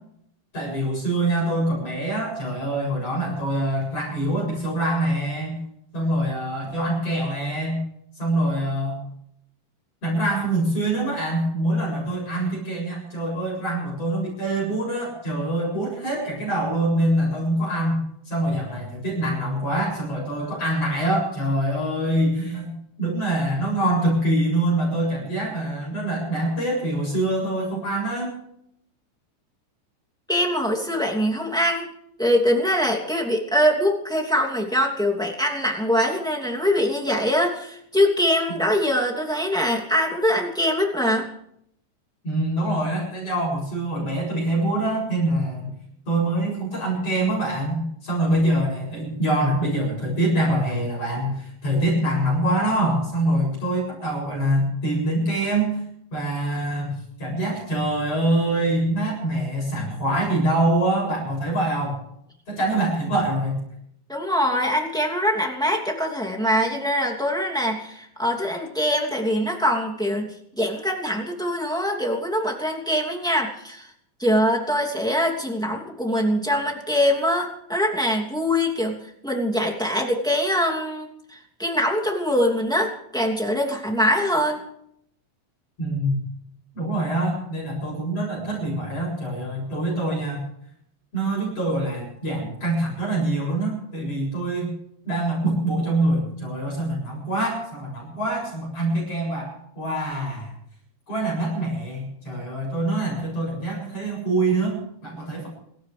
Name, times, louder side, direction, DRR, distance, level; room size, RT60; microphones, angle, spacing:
voice 1, 0.5-5.6 5.9-7.8 8.2-9.0 10.0-18.0 18.3-22.7 23.0-28.4 42.2-45.7 46.1-55.8 56.1-62.0 62.5-63.6 85.8-86.2 86.7-90.4 91.1-94.7 95.0-100.5 101.1-105.5, right 1 dB, 35° left, -2 dB, 8.5 m, -24 dB
voice 2, 30.3-31.9 32.2-41.3 64.1-73.9 74.2-84.6, equal, ahead, 0 dB, 1.4 m, -23 dB
27.0 x 14.5 x 3.4 m, 0.71 s
omnidirectional pair, 5.2 m